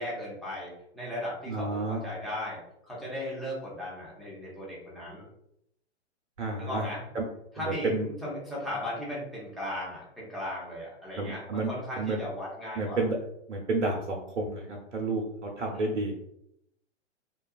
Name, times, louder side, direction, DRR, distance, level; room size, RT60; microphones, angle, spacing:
voice 1, 0.0-2.6 2.9-5.3 6.6-7.0 7.5-13.0 15.7-15.9, left 1 dB, ahead, -7 dB, 0.6 m, -37 dB
voice 2, 1.5-2.0 6.4-6.8 7.1-7.2 7.6-8.1 11.2-11.7 12.0-12.2 12.8-13.2 13.5-16.2, right 3 dB, 90° right, 1 dB, 0.6 m, -30 dB
2.8 x 2.3 x 2.3 m, 0.78 s
hypercardioid pair, 130°, 35 cm